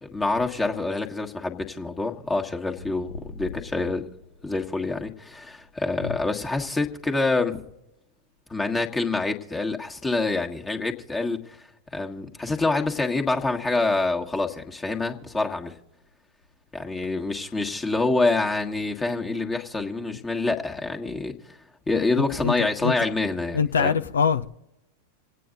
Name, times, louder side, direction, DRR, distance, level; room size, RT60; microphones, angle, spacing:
voice 1, 0.0-4.1 4.4-7.6 8.5-15.8 16.7-21.3 21.9-23.9, left 3 dB, 15° left, 1.5 m, -26 dB
voice 2, 22.4-22.9 23.5-24.5, left 6 dB, 70° left, 0.6 m, -24 dB
27.5 x 9.2 x 3.9 m
figure-of-eight pair, 90°, 0 cm